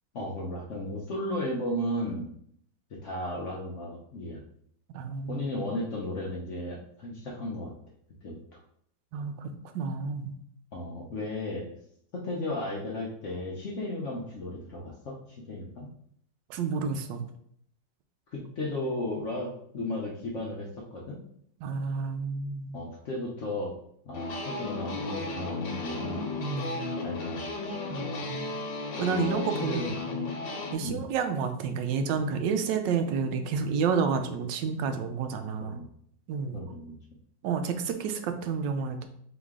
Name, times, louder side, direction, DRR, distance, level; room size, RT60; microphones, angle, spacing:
voice 1, 0.1-2.3 2.9-4.4 5.3-7.7 8.2-8.6 10.7-11.7 12.1-15.9 18.3-21.2 22.7-23.7 24.0-26.3 27.0-27.7 29.0-29.2 29.5-29.9 30.8-31.0 35.6-35.9 36.5-37.0, left 1 dB, 60° left, -2 dB, 0.8 m, -35 dB
voice 2, 4.9-5.4 9.1-10.3 16.5-17.2 21.6-22.8 26.4-26.9 27.9-28.5 29.0-29.8 30.1-30.3 30.7-35.8 36.3-36.6 37.4-39.1, right 5 dB, 85° right, 7 dB, 1.3 m, -30 dB
sound 1, 24.1-30.7, left 3 dB, 80° left, 1.5 m, -34 dB
3.9 x 3.0 x 3.6 m, 0.68 s
omnidirectional pair, 1.9 m